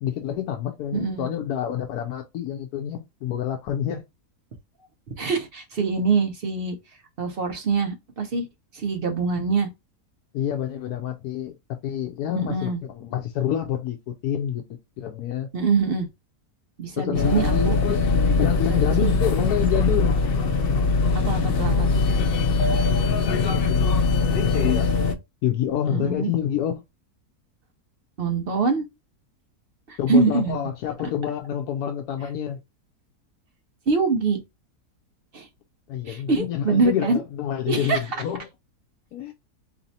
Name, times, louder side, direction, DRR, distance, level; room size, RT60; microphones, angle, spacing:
voice 1, 0.0-4.0 10.3-14.6 15.0-15.5 17.0-18.1 18.4-20.2 22.9-23.9 24.2-24.9 25.4-26.8 30.0-32.6 35.9-38.4 39.1-39.3, left 10 dB, 80° left, 1.1 m, -28 dB
voice 2, 0.9-1.3 5.2-6.8 7.2-8.5 8.7-9.7 12.3-12.8 15.5-16.1 16.8-17.8 18.7-19.2 21.1-22.0 25.9-26.3 28.2-28.8 29.9-30.6 33.9-34.4 35.3-35.5 36.1-37.2 37.7-38.0, right 4 dB, 50° right, 0.7 m, -24 dB
sound 1, 17.1-25.1, left 4 dB, 55° left, 0.6 m, -21 dB
4.1 x 3.2 x 2.7 m
omnidirectional pair, 1.7 m